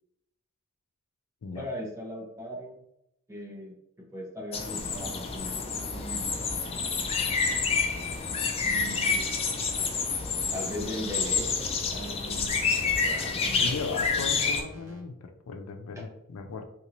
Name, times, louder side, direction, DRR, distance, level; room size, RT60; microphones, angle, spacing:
voice 1, 1.5-2.8 3.3-6.5 8.6-9.3 10.5-13.8 16.0-16.1, left 1 dB, 15° right, -1 dB, 0.7 m, -39 dB
evening birdsong, 4.5-14.6, left 5 dB, 30° left, 0.4 m, -28 dB
sound 1, 6.3-15.0, equal, 60° right, 1.0 m, -49 dB
voice 2, 13.6-16.6, left 4 dB, 90° left, 7 dB, 0.4 m, -37 dB
3.5 x 2.6 x 3.0 m, 0.81 s
head